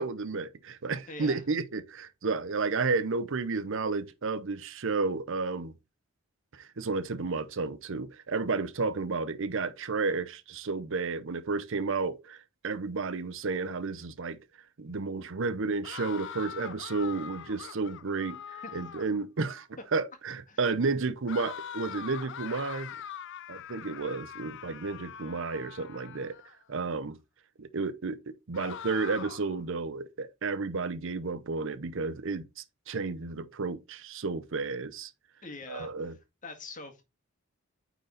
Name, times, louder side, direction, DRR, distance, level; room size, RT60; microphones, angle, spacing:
voice 1, 0.0-5.7 6.5-14.4 14.8-22.9 23.5-26.4 26.7-27.2 27.6-35.1 35.7-36.2, right 4 dB, 65° right, 0.7 m, -32 dB
voice 2, 1.1-1.4 18.6-18.7 20.5-20.6 35.4-35.9 36.4-37.0, left 3 dB, 40° left, 1.9 m, -43 dB
sound 1, 15.8-19.2 21.3-26.5 28.5-29.6, left 8 dB, 60° left, 0.5 m, -43 dB
9.2 x 4.0 x 3.9 m
head